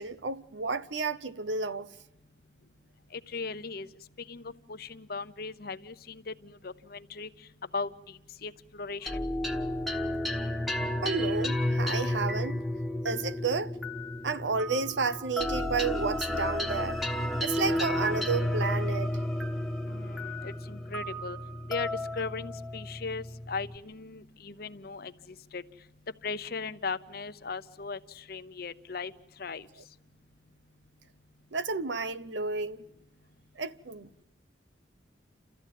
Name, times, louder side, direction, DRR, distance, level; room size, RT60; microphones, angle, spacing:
voice 1, 0.0-1.9 11.0-12.6 13.0-13.8 14.2-17.0 17.4-19.1 31.5-32.8 33.6-34.2, right 4 dB, 85° right, 0.9 m, -31 dB
voice 2, 3.1-3.9 4.2-7.3 7.7-9.2 19.9-21.4 21.7-25.6 26.2-29.1 29.4-29.7, left 4 dB, 55° left, 0.8 m, -38 dB
sound 1, 9.1-23.8, left 1 dB, ahead, 1.2 m, -32 dB
29.5 x 14.0 x 9.3 m
head